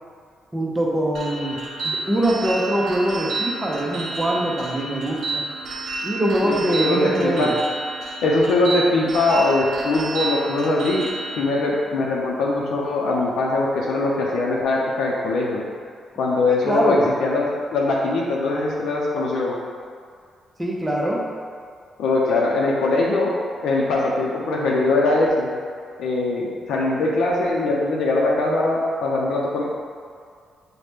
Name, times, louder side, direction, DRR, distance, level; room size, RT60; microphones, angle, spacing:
voice 1, 0.5-5.4 6.0-7.6 16.6-17.1 20.6-21.2, right 1 dB, 10° right, -3 dB, 0.6 m, -23 dB
sound 1, 1.1-11.4, right 3 dB, 70° right, 0.6 m, -30 dB
voice 2, 6.8-7.5 8.2-11.0 11.4-15.6 16.2-19.5 22.0-23.3 23.6-25.5 26.0-29.6, left 2 dB, 90° left, -3 dB, 0.5 m, -21 dB
5.5 x 2.1 x 3.3 m, 2.2 s
cardioid pair, 125°, 0 cm